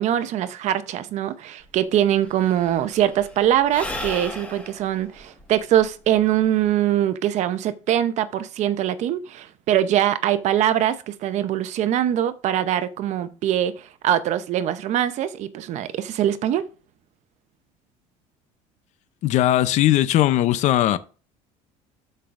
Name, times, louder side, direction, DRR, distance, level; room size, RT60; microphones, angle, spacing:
voice 1, 0.0-16.7, right 11 dB, 50° right, 0.8 m, -22 dB
Sigh / Breathing, 1.6-1.7 1.9-6.7, left 2 dB, 10° left, 1.6 m, -36 dB
voice 2, 19.2-21.0, left 13 dB, 55° left, 0.6 m, -19 dB
13.0 x 5.5 x 2.6 m
cardioid pair, 130°, 15 cm